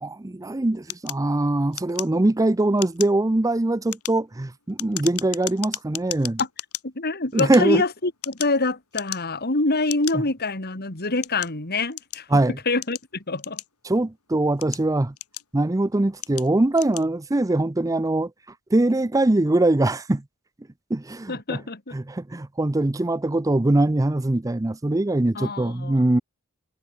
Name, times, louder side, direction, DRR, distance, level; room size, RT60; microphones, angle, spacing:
voice 1, 0.0-6.4 7.3-7.8 10.1-10.2 12.3-12.6 13.8-15.1 15.5-18.3 18.7-20.2 20.9-21.6 21.9-26.2, right 2 dB, 15° right, 0.5 m, -22 dB
sound 1, 0.9-2.4 2.7-3.2 3.7-6.8 7.3-8.6 8.9-9.4 9.9-10.2 10.8-12.3 12.8-14.0 14.5-15.7 16.2-16.5 16.7-17.1, left 13 dB, 90° left, 5.9 m, -35 dB
voice 2, 6.8-13.6 21.3-22.0 25.3-26.0, left 3 dB, 45° left, 2.8 m, -26 dB
head